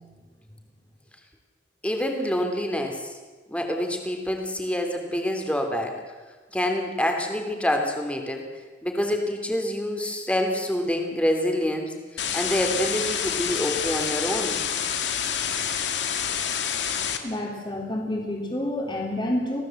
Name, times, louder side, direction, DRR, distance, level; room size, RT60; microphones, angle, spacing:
voice 1, 1.8-3.2 3.5-6.0 6.5-8.5 8.8-14.6, left 1 dB, 5° left, 3 dB, 3.0 m, -27 dB
sound 1, 12.2-17.2, left 8 dB, 85° left, 2.1 m, -27 dB
voice 2, 17.2-19.6, left 1 dB, 25° left, 0 dB, 3.7 m, -28 dB
26.5 x 17.5 x 7.8 m, 1.4 s
head